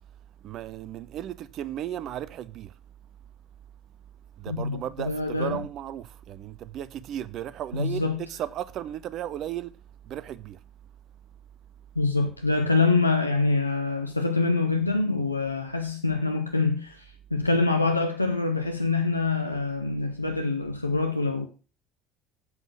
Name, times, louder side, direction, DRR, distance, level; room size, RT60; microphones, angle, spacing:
voice 1, 0.4-2.8 4.4-9.7 10.0-10.6, right 11 dB, 45° right, 0.7 m, -35 dB
voice 2, 4.5-5.6 7.7-8.2 11.9-21.5, left 3 dB, 85° left, 0.7 m, -25 dB
8.1 x 7.5 x 6.2 m
figure-of-eight pair, 60°, 0 cm